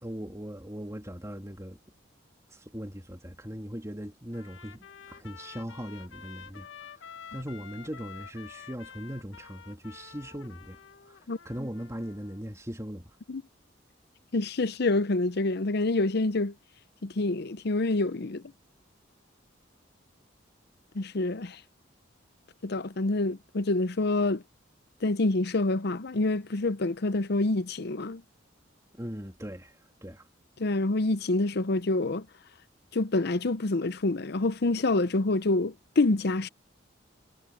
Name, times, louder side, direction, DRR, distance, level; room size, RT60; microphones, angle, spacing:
voice 1, 0.0-1.8 2.5-6.7 7.3-10.8 11.1-11.2 11.4-13.1 28.9-29.7 30.0-30.3, equal, 15° right, 3.0 m, -39 dB
Trumpet, 4.3-12.4, left 7 dB, 80° left, 1.5 m, -49 dB
voice 2, 14.3-16.5 17.0-18.4 20.9-21.6 22.6-24.4 25.0-28.2 30.6-32.3 32.9-36.5, left 2 dB, 60° left, 0.7 m, -27 dB
head